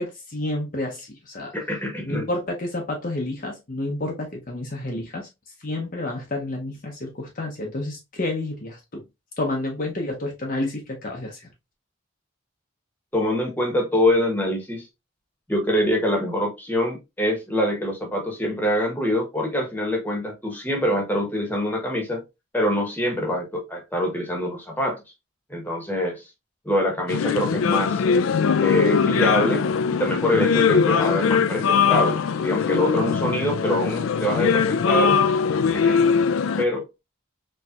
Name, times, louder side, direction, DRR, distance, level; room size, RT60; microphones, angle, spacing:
voice 1, 0.0-1.5 2.1-5.3 5.6-9.0 9.4-11.5, left 2 dB, 40° left, 0.7 m, -30 dB
voice 2, 1.5-2.3 13.1-14.9 15.5-22.2 22.5-25.0 25.5-26.2 26.6-28.0 28.6-29.7 30.0-35.2 35.7-36.1 36.6-36.9, left 1 dB, 10° left, 1.1 m, -24 dB
sound 1, 27.1-36.6, left 6 dB, 75° left, 0.4 m, -21 dB
4.2 x 3.2 x 2.3 m
head